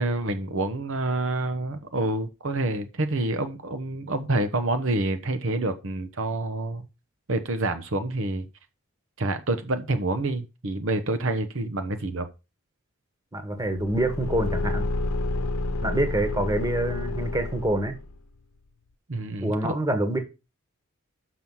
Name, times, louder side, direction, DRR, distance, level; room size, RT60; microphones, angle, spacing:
voice 1, 0.0-6.9 7.3-8.5 9.2-12.3 19.1-19.8, right 2 dB, 60° right, 0.9 m, -27 dB
voice 2, 13.3-14.9 15.8-18.0 19.4-20.2, right 1 dB, 15° right, 1.3 m, -26 dB
Car / Engine, 13.6-18.2, left 2 dB, 90° left, 0.8 m, -29 dB
6.2 x 6.1 x 5.5 m
head